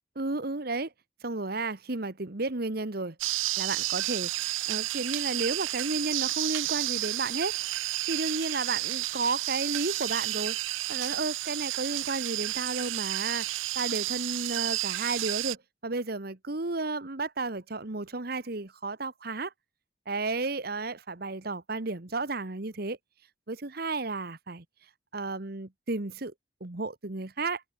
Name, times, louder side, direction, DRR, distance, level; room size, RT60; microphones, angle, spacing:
voice 1, 0.2-0.9 1.2-3.1 3.6-4.3 4.7-7.6 8.1-10.6 10.9-15.6 15.8-19.5 20.1-23.0 23.5-24.6 25.1-26.3 26.6-27.6, right 3 dB, 55° right, 1.4 m, -32 dB
sound 1, 3.2-15.5, right 18 dB, 90° right, 0.4 m, -31 dB
open air
head